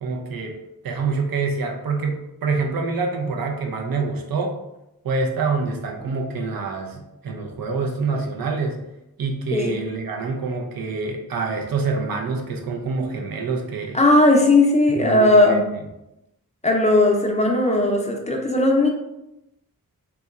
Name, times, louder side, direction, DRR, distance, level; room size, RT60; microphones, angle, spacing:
voice 1, 0.0-0.6 0.8-2.2 2.4-4.6 5.0-8.8 9.2-14.0 15.0-15.6, right 4 dB, 70° right, 1 dB, 0.6 m, -26 dB
voice 2, 13.9-15.6 16.6-18.9, left 2 dB, 20° left, 0 dB, 0.5 m, -17 dB
2.9 x 2.2 x 2.3 m, 0.90 s
cardioid pair, 45°, 36 cm